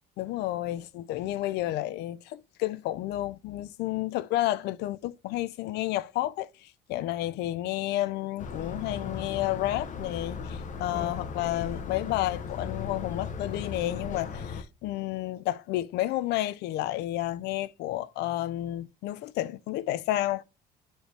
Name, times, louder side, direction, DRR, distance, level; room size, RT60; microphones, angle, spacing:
voice 1, 0.2-20.4, left 15 dB, 80° left, 0.5 m, -31 dB
sound 1, 8.4-14.6, left 5 dB, 50° left, 0.9 m, -37 dB
9.0 x 3.2 x 3.3 m
cardioid pair, 110°, 17 cm